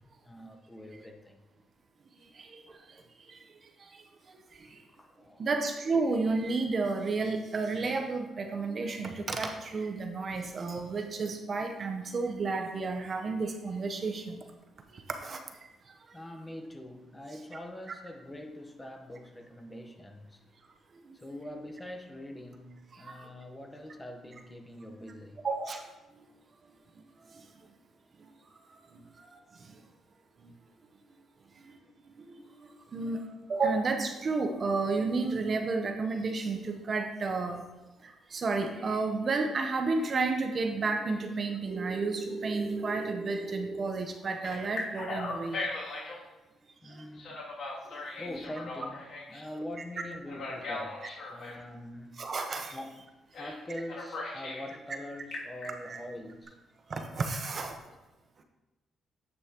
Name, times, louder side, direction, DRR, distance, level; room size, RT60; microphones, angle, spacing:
voice 1, 0.2-1.5 4.9-5.5 16.1-20.4 21.1-25.4 32.7-32.9 46.8-47.5 48.2-52.2 52.7-53.0 53.4-56.6, left 1 dB, 15° left, 4 dB, 0.9 m, -44 dB
voice 2, 2.3-3.0 3.3-3.4 3.9-4.0 4.5-4.8 5.4-14.4 14.9-15.4 21.1-21.2 23.0-23.3 25.4-25.8 28.9-29.8 30.4-30.5 32.2-33.2 33.5-37.6 38.0-45.6 46.8-47.0 52.2-52.8 55.8-56.0 56.9-57.8, right 3 dB, 45° right, 5 dB, 0.8 m, -32 dB
Telephone, 41.6-43.9 44.4-46.2 47.2-49.4 50.3-51.6 53.3-53.6 53.9-54.7 55.1-55.7, left 1 dB, 65° left, 2.5 m, -38 dB
9.6 x 5.5 x 2.9 m, 1.0 s
cardioid pair, 90°, 0 cm